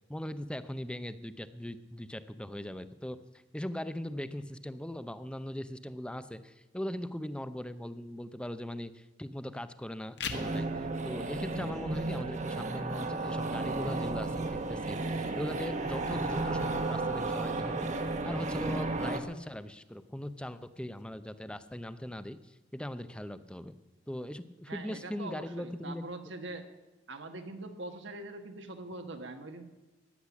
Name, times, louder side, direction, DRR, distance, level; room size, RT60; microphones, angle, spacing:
voice 1, 0.1-3.2 3.5-10.7 11.0-23.7 24.1-26.0, left 1 dB, 5° left, 12 dB, 0.6 m, -40 dB
sound 1, 10.0-21.0, left 5 dB, 65° left, 1.3 m, -50 dB
sound 2, 10.3-19.2, right 2 dB, 40° right, 1.2 m, -33 dB
voice 2, 24.7-26.7 27.1-29.6, right 2 dB, 75° right, 6 dB, 1.5 m, -43 dB
15.0 x 10.0 x 7.2 m, 1.1 s
head